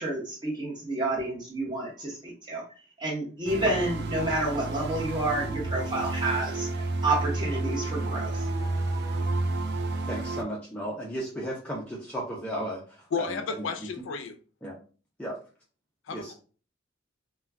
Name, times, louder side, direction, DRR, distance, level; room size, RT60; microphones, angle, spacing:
voice 1, 0.0-2.6 3.0-8.4, right 2 dB, 25° right, -3 dB, 0.8 m, -29 dB
sound 1, 3.5-10.4, right 2 dB, 55° right, 0.4 m, -30 dB
voice 2, 10.1-13.3 13.6-13.7 14.6-14.7 15.2-15.3 16.1-16.3, equal, 5° left, -5 dB, 0.4 m, -35 dB
voice 3, 13.1-14.4 16.1-16.3, left 5 dB, 70° left, 7 dB, 0.4 m, -32 dB
2.2 x 2.2 x 3.4 m, 0.39 s
head